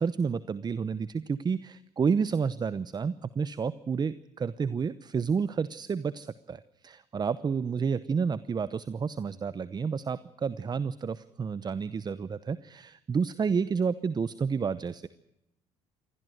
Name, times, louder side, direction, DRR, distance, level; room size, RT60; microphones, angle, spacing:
voice 1, 0.0-15.1, right 5 dB, 35° right, 16 dB, 0.8 m, -30 dB
23.0 x 16.5 x 7.9 m, 0.85 s
supercardioid pair, 75°, 13 cm